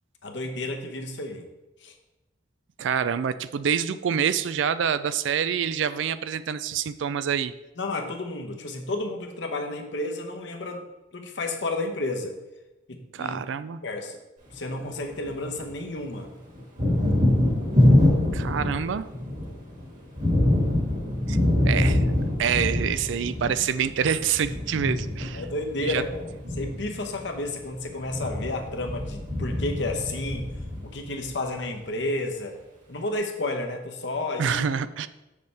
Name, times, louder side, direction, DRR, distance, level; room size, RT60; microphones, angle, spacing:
voice 1, 0.2-1.5 1.8-1.9 7.8-10.8 11.1-12.3 12.9-13.5 13.8-14.2 14.5-16.3 25.3-30.5 30.8-32.5 32.9-34.6, left 2 dB, 70° left, 4 dB, 0.9 m, -31 dB
voice 2, 2.8-7.5 13.1-13.8 18.3-19.1 21.3-21.4 21.6-22.1 22.4-25.4 25.8-26.0 34.4-35.1, right 7 dB, 80° right, 14 dB, 0.4 m, -26 dB
Thunder, 14.5-15.7 16.0-31.3, left 1 dB, 40° right, 1.9 m, -25 dB
7.1 x 6.6 x 3.4 m, 1.0 s
head